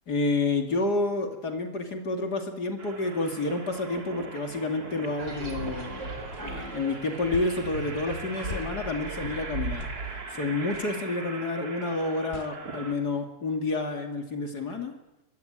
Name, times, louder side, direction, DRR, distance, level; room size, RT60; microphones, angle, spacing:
voice 1, 0.1-6.1 6.4-9.9 10.3-14.9, left 2 dB, 60° left, 5 dB, 3.1 m, -29 dB
sound 1, 2.8-12.9, right 3 dB, 55° right, 3.1 m, -41 dB
sound 2, 5.2-10.3, right 2 dB, 75° right, 5.1 m, -37 dB
sound 3, 6.3-6.5 7.3-7.6 8.5-8.7 9.8-10.0 10.7-10.9 12.3-12.5, left 5 dB, 35° left, 1.1 m, -39 dB
23.5 x 22.5 x 9.0 m, 0.90 s
omnidirectional pair, 2.0 m